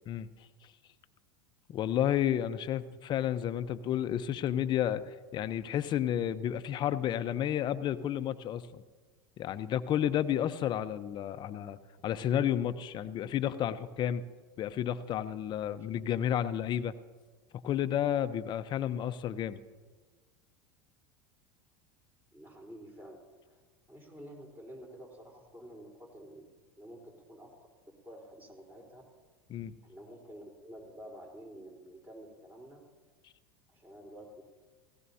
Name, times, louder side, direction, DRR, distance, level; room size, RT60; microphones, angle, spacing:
voice 1, 1.7-8.8 9.4-14.2 14.6-16.9 17.6-19.6 29.5-29.7, left 10 dB, 40° left, 13 dB, 0.8 m, -31 dB
voice 2, 22.3-23.2 23.4-23.6 23.9-27.5 28.0-29.0 29.8-32.8 33.7-34.4, equal, 15° right, 0 dB, 4.1 m, -50 dB
18.0 x 16.5 x 2.8 m, 1.4 s
hypercardioid pair, 95°, 12 cm